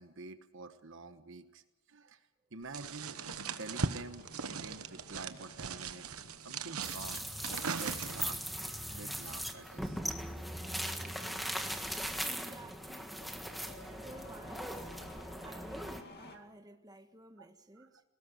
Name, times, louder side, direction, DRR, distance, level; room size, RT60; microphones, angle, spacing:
voice 1, 0.0-1.6 1.9-2.2 2.5-6.1 6.4-10.0 10.6-12.2 13.5-14.1 15.2-15.7 16.3-16.4 17.4-17.5 17.8-17.9, right 3 dB, 60° right, 1.2 m, -49 dB
sound 1, 2.7-8.4, right 5 dB, 85° right, 1.1 m, -39 dB
Engine starting, 3.1-16.4, left 2 dB, 50° left, 2.4 m, -57 dB
sound 2, 6.8-16.0, equal, ahead, 1.5 m, -39 dB
voice 2, 12.2-13.2 14.0-14.9 15.4-18.0, right 1 dB, 15° right, 1.5 m, -54 dB
21.0 x 18.0 x 9.2 m
head